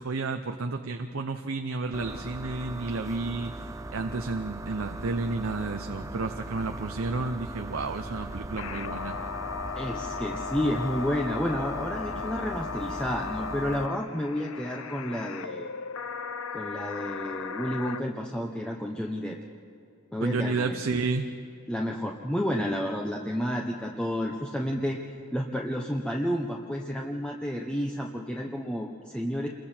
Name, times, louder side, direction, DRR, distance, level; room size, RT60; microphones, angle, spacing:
voice 1, 0.0-3.7 3.9-9.2 20.2-21.3, right 3 dB, 70° right, 6 dB, 0.8 m, -31 dB
sound 1, 1.9-13.9, right 2 dB, 15° right, 0.4 m, -39 dB
sound 2, 8.6-18.0, left 6 dB, 80° left, 0.7 m, -36 dB
voice 2, 9.7-15.7 16.5-19.4 20.1-20.8 21.7-25.0 25.3-29.5, equal, 5° left, -1 dB, 1.0 m, -31 dB
28.0 x 22.0 x 4.5 m, 2.5 s
head